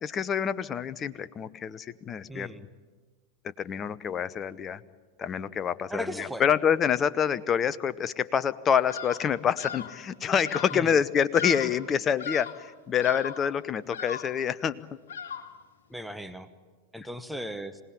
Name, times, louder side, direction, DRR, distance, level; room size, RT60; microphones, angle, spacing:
voice 1, 0.0-2.5 3.6-4.8 5.2-14.8, left 8 dB, 25° left, 16 dB, 0.8 m, -27 dB
voice 2, 2.3-2.6 5.9-6.4 10.7-10.9 15.9-16.5 16.9-17.8, equal, ahead, 10 dB, 1.1 m, -36 dB
Bird vocalization bird call bird song, 8.9-9.3 9.6-10.0 10.4-10.9 11.3-11.9 12.2-12.7 13.0-13.5 13.9-14.4 15.1-15.6, left 7 dB, 60° left, 2.0 m, -38 dB
26.5 x 18.5 x 9.9 m, 1.4 s
figure-of-eight pair, 90°, 0 cm